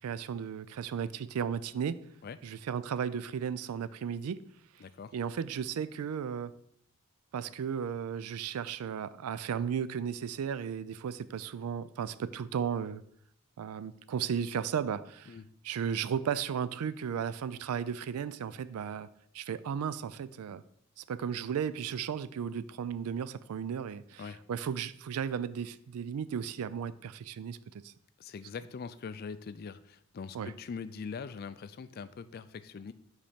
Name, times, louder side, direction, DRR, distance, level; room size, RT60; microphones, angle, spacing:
voice 1, 0.0-2.0 2.4-4.4 5.1-6.5 7.3-13.0 13.6-15.3 15.6-19.1 19.3-20.6 21.0-27.6 27.8-27.9 30.3-30.5, right 7 dB, 85° right, 16 dB, 0.4 m, -35 dB
voice 2, 4.8-5.1 15.3-15.5 24.2-24.4 28.2-32.9, left 5 dB, 45° left, 13 dB, 0.3 m, -42 dB
5.2 x 4.3 x 5.0 m, 0.69 s
head